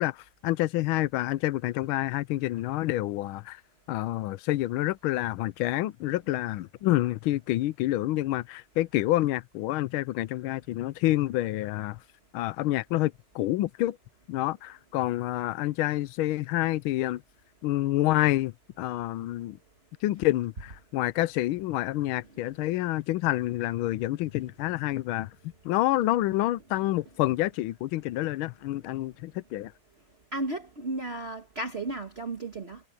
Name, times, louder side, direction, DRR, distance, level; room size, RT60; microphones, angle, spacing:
voice 1, 0.0-3.6 3.9-12.0 12.3-14.0 14.3-17.2 17.6-19.6 20.0-25.3 25.6-29.7, left 16 dB, 80° left, 1.4 m, -28 dB
voice 2, 30.3-32.8, right 2 dB, 30° right, 1.6 m, -34 dB
omnidirectional pair, 2.3 m